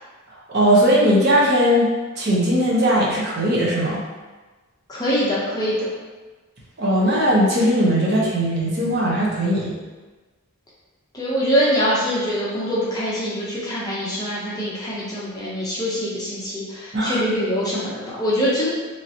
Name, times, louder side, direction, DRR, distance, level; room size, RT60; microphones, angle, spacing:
voice 1, 0.5-1.9 2.2-4.0 6.8-9.7 16.9-17.2, equal, 45° right, -6 dB, 0.7 m, -18 dB
voice 2, 4.9-5.9 11.1-18.7, equal, 15° left, -7 dB, 0.5 m, -23 dB
3.1 x 2.8 x 2.7 m, 1.3 s
head